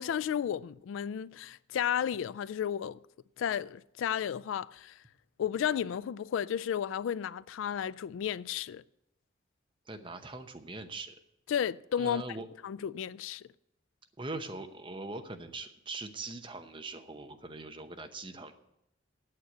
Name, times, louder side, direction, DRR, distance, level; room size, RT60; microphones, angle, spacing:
voice 1, 0.0-3.0 3.4-5.0 5.4-8.8 11.5-12.2 12.6-13.4, left 9 dB, 80° left, 0.3 m, -33 dB
voice 2, 9.9-11.2 12.0-12.5 14.2-18.5, right 3 dB, 25° right, 0.8 m, -41 dB
9.0 x 8.0 x 7.9 m
head